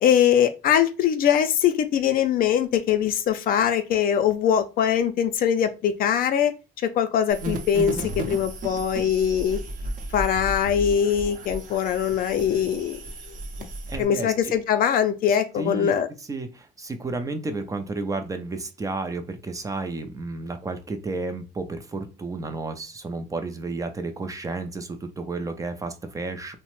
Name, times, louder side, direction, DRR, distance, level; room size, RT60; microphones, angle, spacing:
voice 1, 0.0-6.5 6.8-9.6 10.1-13.0 14.0-16.1, left 9 dB, 60° left, 9 dB, 0.4 m, -22 dB
sound 1, 7.3-14.0, right 1 dB, 50° right, 0.7 m, -34 dB
voice 2, 13.9-14.5 15.6-15.9 16.2-26.6, right 3 dB, 20° right, 7 dB, 0.5 m, -32 dB
2.9 x 2.1 x 3.0 m, 0.30 s
cardioid pair, 110°, 17 cm